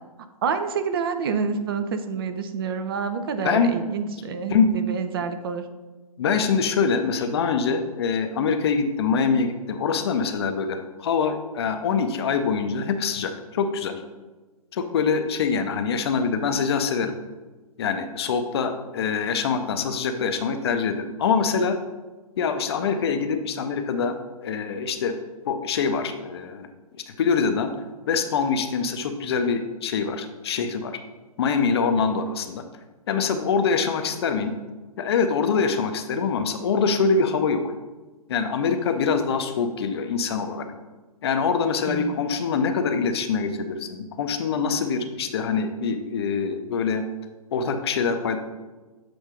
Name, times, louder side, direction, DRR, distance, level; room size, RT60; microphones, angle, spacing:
voice 1, 0.4-5.7 41.9-42.1, right 5 dB, 40° right, 9 dB, 0.4 m, -28 dB
voice 2, 6.2-14.0 14.7-17.1 17.8-21.8 22.4-24.2 24.4-25.2 25.5-26.7 26.9-27.7 28.1-31.0 31.4-32.6 33.1-34.5 35.0-37.6 38.3-40.7 41.2-47.0 47.5-48.4, left 5 dB, 45° left, 7 dB, 0.6 m, -24 dB
7.5 x 2.6 x 4.9 m, 1.2 s
figure-of-eight pair, 125°, 19 cm